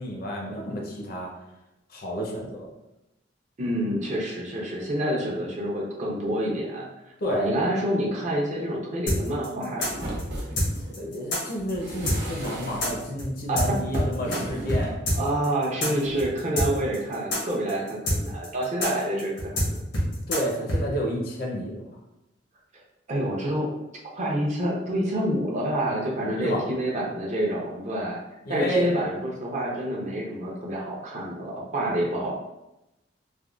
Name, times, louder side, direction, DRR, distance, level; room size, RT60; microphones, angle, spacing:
voice 1, 0.0-1.3 1.9-2.7 7.2-7.5 10.8-15.0 20.3-21.9 26.4-26.6 28.5-28.9, equal, 50° left, 0 dB, 0.5 m, -30 dB
voice 2, 3.6-6.9 7.3-10.2 13.5-13.6 14.2-14.4 15.2-19.8 23.1-23.7 24.1-28.2 28.5-32.3, right 1 dB, 40° right, -3 dB, 0.6 m, -28 dB
sound 1, 9.1-14.4 14.7-14.8 15.1-20.8, left 1 dB, 90° left, 1.1 m, -26 dB
sound 2, 9.8-11.0 11.6-13.0 13.9-15.0 15.9-16.2, right 1 dB, 80° right, 0.8 m, -36 dB
3.4 x 2.1 x 2.3 m, 0.92 s
head